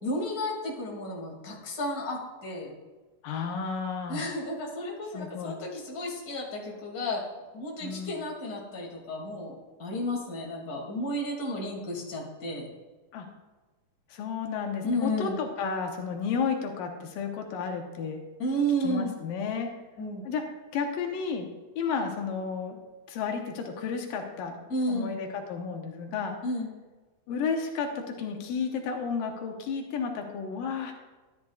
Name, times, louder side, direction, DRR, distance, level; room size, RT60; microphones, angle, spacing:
voice 1, 0.0-2.7 4.1-7.2 7.5-12.7 14.8-15.4 18.4-19.1 20.0-20.3 24.7-25.1 26.4-26.7, equal, 30° left, -2 dB, 2.5 m, -32 dB
voice 2, 3.2-4.3 5.1-5.6 7.8-8.2 13.1-13.3 14.1-18.2 18.8-19.7 20.2-20.4 20.7-21.5 21.8-22.8 23.1-24.6 24.9-26.4 27.3-30.9, left 5 dB, 85° left, 3 dB, 2.7 m, -32 dB
13.0 x 11.0 x 2.4 m, 1.3 s
omnidirectional pair, 3.9 m